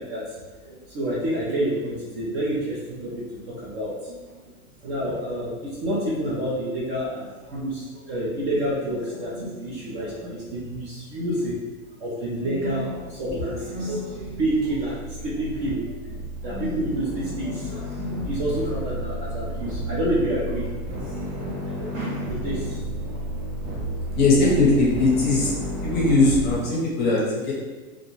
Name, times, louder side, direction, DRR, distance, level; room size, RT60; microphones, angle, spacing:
voice 1, 0.0-4.5 4.8-11.6 12.0-15.9 16.4-20.7 21.1-23.3, right 1 dB, 30° right, -6 dB, 0.4 m, -29 dB
sound 1, 12.8-26.6, right 1 dB, 85° right, 1.1 m, -32 dB
voice 2, 24.1-25.5 25.8-27.5, left 2 dB, 25° left, -5 dB, 0.6 m, -20 dB
2.5 x 2.1 x 3.0 m, 1.3 s
supercardioid pair, 140°, 43 cm